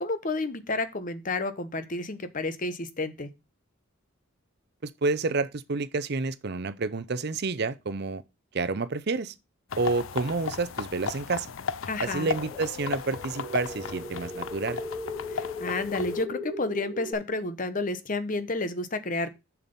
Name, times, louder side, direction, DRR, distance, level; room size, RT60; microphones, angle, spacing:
voice 1, 0.0-3.3 11.9-12.3 15.3-19.3, left 2 dB, 40° left, 0.9 m, -31 dB
voice 2, 4.8-8.2 8.5-9.3 9.8-11.5 12.0-14.8, right 3 dB, 50° right, 0.6 m, -29 dB
sound 1, 9.7-16.2, left 6 dB, 75° left, 0.5 m, -35 dB
sound 2, 12.2-17.1, left 2 dB, 25° left, 3.1 m, -38 dB
7.2 x 5.9 x 5.3 m
head